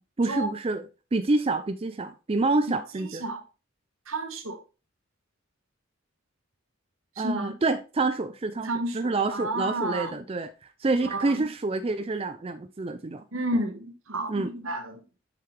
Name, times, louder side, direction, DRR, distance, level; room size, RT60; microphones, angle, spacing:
voice 1, 0.2-0.8 1.1-3.2 7.2-8.7 8.9-10.5 10.8-13.2 14.3-14.5, right 3 dB, 25° right, 0.4 m, -27 dB
voice 2, 3.0-3.4 4.1-4.6 7.1-7.5 8.6-10.2 11.0-11.5 13.3-15.0, right 1 dB, 75° right, 1.3 m, -31 dB
6.7 x 6.6 x 3.2 m
head